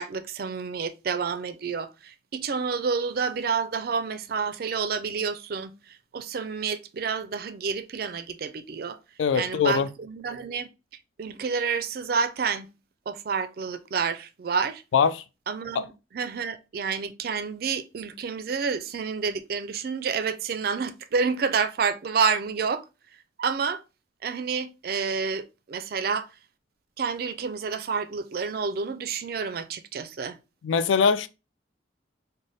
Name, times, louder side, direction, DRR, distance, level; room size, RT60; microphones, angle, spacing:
voice 1, 0.0-5.7 6.1-9.0 9.3-10.7 11.2-12.7 13.1-14.8 15.5-15.8 16.1-22.8 23.4-23.8 24.2-26.3 27.0-30.4, right 5 dB, 50° right, 0.4 m, -29 dB
voice 2, 9.2-9.9 14.9-15.2 15.7-15.9 30.6-31.3, left 6 dB, 85° left, 0.4 m, -22 dB
3.9 x 2.1 x 3.2 m
head